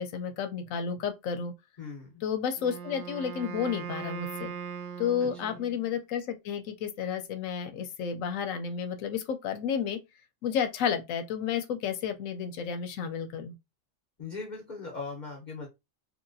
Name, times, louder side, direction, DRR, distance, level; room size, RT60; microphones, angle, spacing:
voice 1, 0.0-1.5 2.2-4.5 5.0-10.0 10.4-13.5, left 7 dB, 90° left, 1.0 m, -31 dB
voice 2, 1.8-2.2 5.2-5.6 14.2-15.7, left 4 dB, 40° left, 0.9 m, -40 dB
Wind instrument woodwind instrument, 2.6-5.9, right 7 dB, 65° right, 0.5 m, -39 dB
3.1 x 2.7 x 2.6 m
omnidirectional pair, 1.3 m